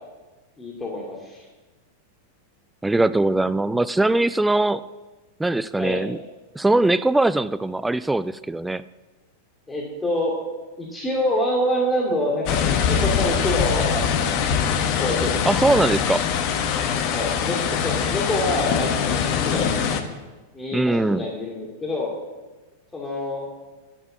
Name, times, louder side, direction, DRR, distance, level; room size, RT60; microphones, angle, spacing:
voice 1, 0.6-1.4 5.8-6.0 9.7-10.4 10.8-14.2 15.0-15.3 17.1-19.7 20.5-22.1 22.9-23.5, left 1 dB, 15° left, -2 dB, 2.5 m, -26 dB
voice 2, 2.8-4.8 5.4-6.2 6.5-8.8 15.5-16.3 20.7-21.3, right 2 dB, 5° right, 15 dB, 0.3 m, -21 dB
sound 1, 12.5-20.0, left 7 dB, 45° left, 1.2 m, -23 dB
11.0 x 10.5 x 7.9 m, 1.2 s
figure-of-eight pair, 90°, 0 cm